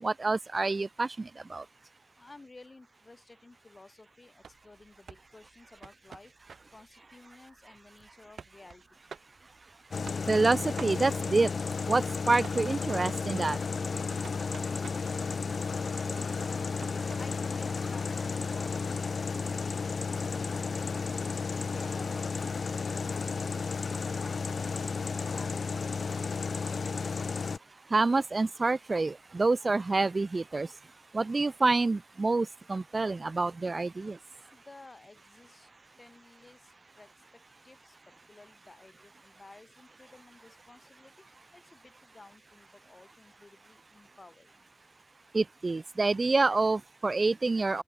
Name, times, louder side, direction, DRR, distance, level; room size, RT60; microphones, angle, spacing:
voice 1, 0.0-1.7 10.3-11.5 11.9-13.6 27.9-30.7 31.1-34.2 45.3-47.8, right 3 dB, 35° right, 0.4 m, -27 dB
voice 2, 2.2-6.3 6.7-8.8 17.2-19.8 21.7-23.8 24.2-27.2 34.5-35.7 36.0-41.3 41.5-44.6, left 3 dB, 30° left, 7.9 m, -54 dB
sound 1, 4.4-18.2, right 6 dB, 80° right, 7.1 m, -52 dB
sound 2, 9.9-27.6, left 5 dB, 55° left, 0.3 m, -33 dB
wide cardioid pair, 160°, 0 cm